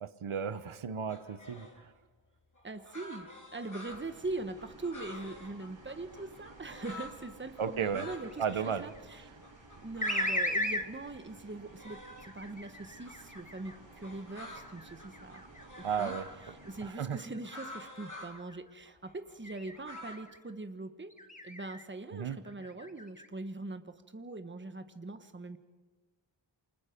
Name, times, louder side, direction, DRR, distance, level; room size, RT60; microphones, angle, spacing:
voice 1, 0.0-1.9 7.6-8.1 8.4-8.8 15.8-16.3 16.8-17.2 22.1-22.4, right 7 dB, 85° right, 12 dB, 1.1 m, -34 dB
sound 1, 1.1-1.8 2.5-7.2 7.5-8.8 9.1-9.2 9.4-10.4 10.8-12.5 13.0-16.3 16.7-18.4 18.8-20.2, left 1 dB, 40° left, 6.3 m, -48 dB
voice 2, 2.6-9.2 9.8-15.4 15.8-16.1 16.7-21.1 21.4-25.6, right 2 dB, 25° right, 8 dB, 1.3 m, -42 dB
sound 2, 3.9-16.9, right 2 dB, 65° right, 3.2 m, -55 dB
sound 3, 8.2-9.0 10.0-10.9 11.9-13.8 14.4-17.7 18.2-18.6 19.4-20.4 21.1-21.8 22.3-23.3, left 1 dB, 15° left, 1.5 m, -38 dB
28.0 x 21.0 x 5.2 m, 1.3 s
wide cardioid pair, 50°, 48 cm